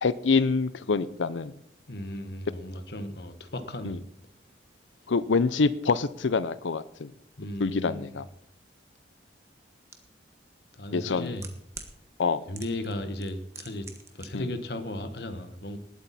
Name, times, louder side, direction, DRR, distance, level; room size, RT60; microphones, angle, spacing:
voice 1, 0.0-1.5 3.8-4.0 5.1-7.1 7.6-8.2 10.9-11.4 12.2-12.4 14.3-14.5, left 4 dB, 90° left, 0.6 m, -26 dB
voice 2, 1.9-4.0 7.4-8.2 10.8-11.5 12.5-13.9 14.1-15.8, left 1 dB, 60° left, 1.3 m, -36 dB
sound 1, 9.9-10.0 10.9-11.9 12.5-12.9 13.2-14.3 14.5-14.6, right 4 dB, 15° right, 1.2 m, -42 dB
19.5 x 8.5 x 4.2 m
head